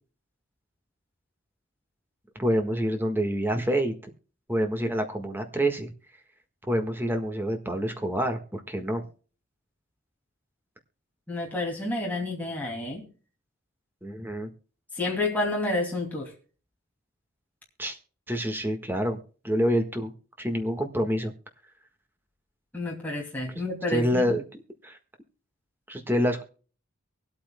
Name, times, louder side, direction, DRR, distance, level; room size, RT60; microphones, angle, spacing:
voice 1, 2.3-3.9 4.5-5.9 6.7-9.1 14.0-14.5 17.8-18.0 18.3-19.2 19.4-20.1 20.4-21.3 23.9-25.0 25.9-26.4, equal, 10° right, 5 dB, 1.6 m, -27 dB
voice 2, 11.3-13.0 14.9-16.3 22.7-24.3, left 2 dB, 10° left, -2 dB, 2.5 m, -29 dB
23.5 x 8.7 x 2.2 m, 0.39 s
head